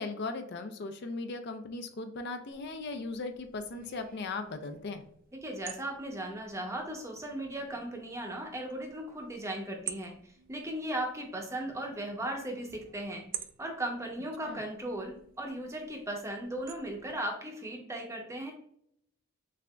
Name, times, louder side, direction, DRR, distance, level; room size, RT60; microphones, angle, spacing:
voice 1, 0.0-5.0 14.5-14.6, left 3 dB, 50° left, 7 dB, 0.4 m, -38 dB
sound 1, 2.5-17.1, right 10 dB, 40° right, 0.3 m, -50 dB
voice 2, 5.4-10.1 10.5-13.2 13.6-18.5, right 1 dB, 15° right, 2 dB, 0.7 m, -37 dB
6.5 x 2.5 x 2.2 m, 0.68 s
head